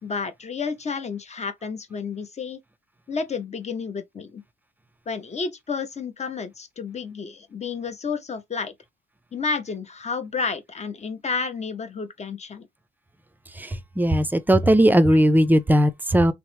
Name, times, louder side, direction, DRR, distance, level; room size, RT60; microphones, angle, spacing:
voice 1, 0.0-2.6 3.1-4.4 5.1-8.7 9.3-12.7 15.1-15.2, left 5 dB, 35° left, 0.6 m, -31 dB
voice 2, 13.6-16.3, equal, 10° right, 0.4 m, -18 dB
3.0 x 2.0 x 3.0 m
cardioid pair, 90°, 20 cm